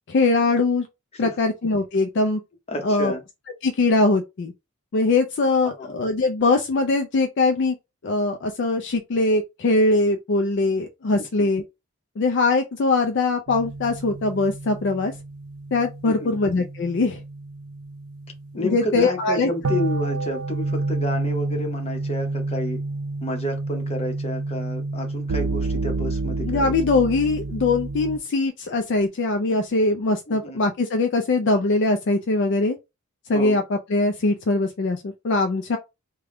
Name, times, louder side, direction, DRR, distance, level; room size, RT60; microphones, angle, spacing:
voice 1, 0.1-0.9 1.2-2.4 2.8-3.1 3.6-4.5 4.9-7.8 8.0-11.6 12.2-15.1 15.7-17.2 18.5-19.5 26.4-32.8 33.3-35.8, left 3 dB, 50° left, 0.4 m, -22 dB
voice 2, 2.7-3.2 5.6-5.9 11.4-11.5 16.1-16.3 18.6-22.8 23.2-26.7 30.3-30.6 33.3-33.6, left 1 dB, 25° left, 0.8 m, -30 dB
sound 1, 13.5-28.2, right 3 dB, 85° right, 0.5 m, -29 dB
3.4 x 2.2 x 3.6 m
head